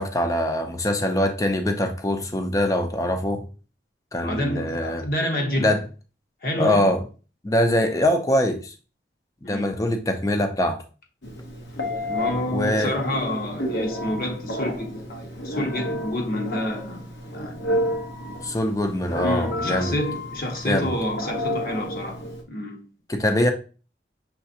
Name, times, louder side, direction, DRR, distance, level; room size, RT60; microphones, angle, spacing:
voice 1, 0.0-3.5 4.1-5.1 5.6-5.8 6.6-7.0 7.4-8.7 9.5-10.8 12.5-13.0 18.4-20.0 20.6-20.9 23.1-23.5, left 1 dB, 20° left, 0.5 m, -23 dB
voice 2, 4.2-5.7 6.4-6.9 9.4-9.7 12.1-17.8 19.1-22.8 23.4-23.5, left 1 dB, 55° left, 0.9 m, -28 dB
Telephone, 11.2-22.4, left 1 dB, 75° left, 1.1 m, -31 dB
5.7 x 3.4 x 2.8 m
head